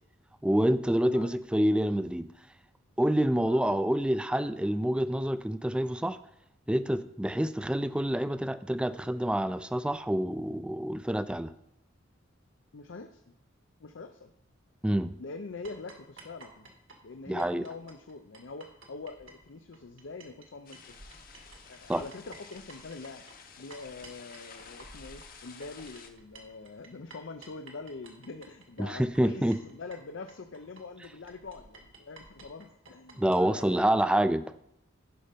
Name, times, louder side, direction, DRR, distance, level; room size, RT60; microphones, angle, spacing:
voice 1, 0.4-2.3 3.0-6.2 6.7-11.5 14.8-15.1 17.3-17.6 21.9-22.0 28.8-29.6 33.2-34.4, right 1 dB, 5° right, 12 dB, 0.3 m, -27 dB
voice 2, 12.7-13.3 13.8-14.3 15.2-16.7 17.0-20.9 21.7-23.2 23.6-34.0, left 3 dB, 70° left, 7 dB, 0.6 m, -44 dB
sound 1, 15.6-20.5 20.7-33.7, right 3 dB, 75° right, 1.8 m, -53 dB
sound 2, 20.7-26.1, left 6 dB, 45° left, 0.9 m, -51 dB
11.5 x 5.4 x 5.1 m, 0.77 s
head